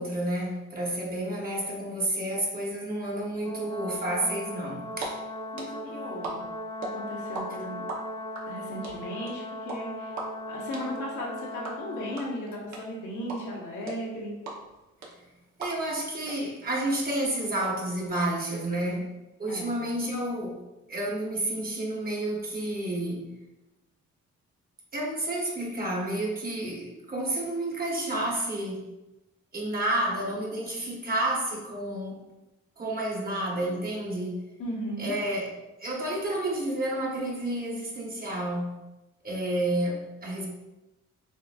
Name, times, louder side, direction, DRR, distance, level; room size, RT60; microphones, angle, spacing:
voice 1, 0.0-5.2 15.6-19.1 19.4-20.6 20.9-23.3 24.9-28.8 29.5-32.2 32.8-34.4 35.0-35.5 35.8-38.8 39.2-40.5, right 1 dB, 30° right, -2 dB, 1.2 m, -30 dB
Brass instrument, 3.4-12.4, left 1 dB, 15° left, 1.0 m, -38 dB
sound 1, 4.8-5.1 5.3-7.4 7.7-16.0 16.3-16.4 16.6-17.7, right 4 dB, 70° right, 1.1 m, -38 dB
voice 2, 5.5-6.4 6.8-7.8 8.5-10.1 10.5-14.3 19.5-19.8 34.6-35.1, equal, 80° left, -4 dB, 1.4 m, -36 dB
6.8 x 2.6 x 2.4 m, 1.0 s
cardioid pair, 90°, 30 cm